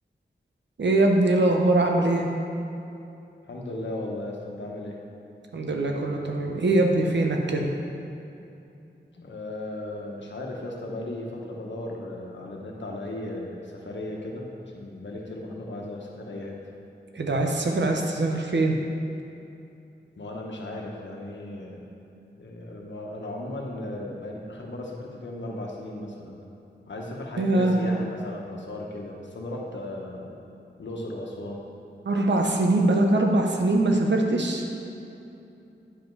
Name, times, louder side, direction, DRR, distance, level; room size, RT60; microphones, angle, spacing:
voice 1, 0.8-2.3 5.5-7.7 17.1-18.8 27.4-27.8 32.0-34.6, right 2 dB, 75° right, 2 dB, 1.0 m, -22 dB
voice 2, 3.5-5.0 9.1-16.6 20.2-21.9 22.4-26.5 26.9-30.3 30.8-31.7, left 1 dB, 80° left, -1 dB, 1.2 m, -36 dB
10.0 x 5.3 x 4.7 m, 2.8 s
cardioid pair, 55°, 19 cm